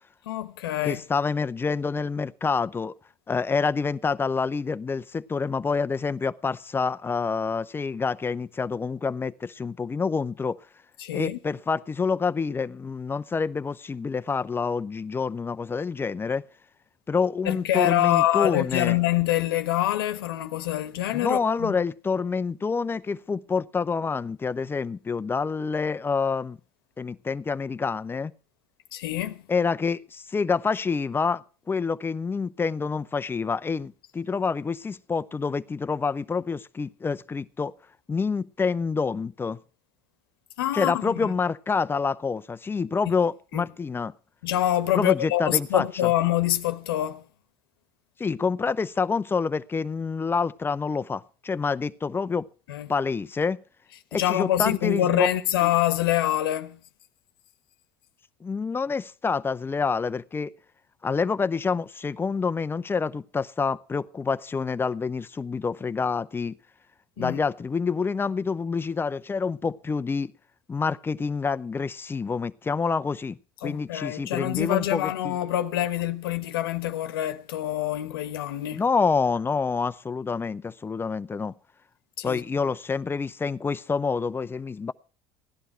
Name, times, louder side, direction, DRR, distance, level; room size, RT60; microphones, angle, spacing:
voice 1, 0.3-1.0 11.0-11.4 17.4-21.8 28.9-29.4 40.6-41.3 43.5-43.6 44.4-47.2 52.7-52.9 54.1-56.8 67.2-67.4 73.6-78.8 82.2-82.7, left 13 dB, 90° left, 1.2 m, -26 dB
voice 2, 0.8-2.9 3.3-10.6 11.1-16.4 17.1-19.0 21.1-26.6 27.0-28.3 29.5-37.7 38.1-39.6 40.7-44.1 44.9-46.1 48.2-52.5 52.9-53.6 54.1-55.3 55.6-55.7 58.4-60.5 61.0-66.6 67.2-70.3 70.7-73.4 73.6-75.4 78.7-81.5 82.2-84.9, left 5 dB, 20° left, 0.7 m, -27 dB
16.5 x 11.0 x 4.5 m
supercardioid pair, 95°, 12 cm